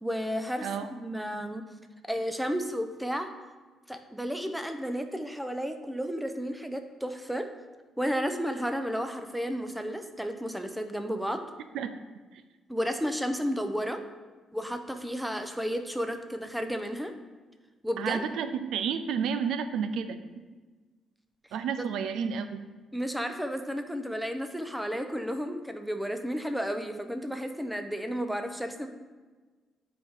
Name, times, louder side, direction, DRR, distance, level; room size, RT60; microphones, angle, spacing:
voice 1, 0.0-0.7 1.0-1.6 2.1-3.3 3.9-7.5 8.0-11.5 12.7-14.0 14.5-17.1 17.8-18.3 22.9-28.9, equal, 5° right, 7 dB, 0.7 m, -32 dB
voice 2, 18.0-20.2 21.5-22.6, right 7 dB, 80° right, 10 dB, 0.4 m, -31 dB
8.9 x 4.7 x 3.7 m, 1.4 s
cardioid pair, 90°, 0 cm